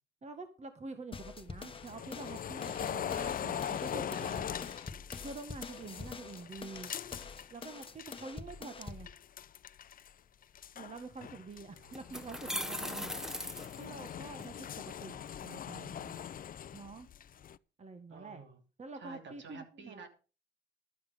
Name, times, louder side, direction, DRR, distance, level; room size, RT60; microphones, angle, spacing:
voice 1, 0.2-4.7 5.2-6.9 7.5-9.1 10.7-13.1 13.7-14.7 15.0-16.4 16.7-17.1 17.8-18.4 18.8-20.1, right 3 dB, 35° right, 8 dB, 1.6 m, -47 dB
sound 1, 1.1-9.1, left 4 dB, 25° left, 1.3 m, -46 dB
sound 2, 1.2-8.2 8.5-10.1 10.4-17.6, left 9 dB, 45° left, 0.6 m, -42 dB
voice 2, 6.7-7.3 11.7-12.2 18.1-18.6 18.9-20.1, right 4 dB, 65° right, 6 dB, 3.2 m, -52 dB
sound 3, 11.9-14.5, equal, ahead, 1.2 m, -39 dB
12.5 x 9.4 x 5.1 m, 0.34 s
cardioid pair, 90°, 20 cm